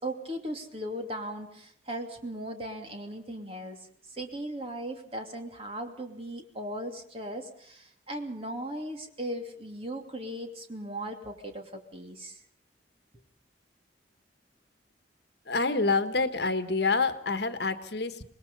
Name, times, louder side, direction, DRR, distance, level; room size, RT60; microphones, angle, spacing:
voice 1, 0.0-3.8 4.1-12.4, right 1 dB, 35° right, 4 dB, 2.7 m, -38 dB
voice 2, 15.5-18.2, left 3 dB, 65° left, 10 dB, 1.4 m, -27 dB
26.0 x 20.0 x 5.5 m, 0.66 s
head